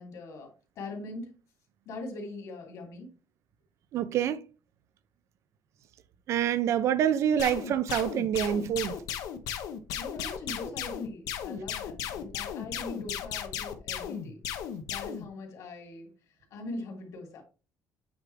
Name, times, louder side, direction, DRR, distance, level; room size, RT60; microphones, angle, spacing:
voice 1, 0.0-1.4 1.9-3.1 10.0-14.4 14.9-16.1 16.5-17.4, left 2 dB, 60° left, 2.7 m, -41 dB
voice 2, 3.9-4.4 6.3-9.0, right 9 dB, 55° right, 0.6 m, -26 dB
sound 1, 7.4-15.3, left 9 dB, 85° left, 1.0 m, -35 dB
8.7 x 3.6 x 4.6 m
cardioid pair, 170°, 6 cm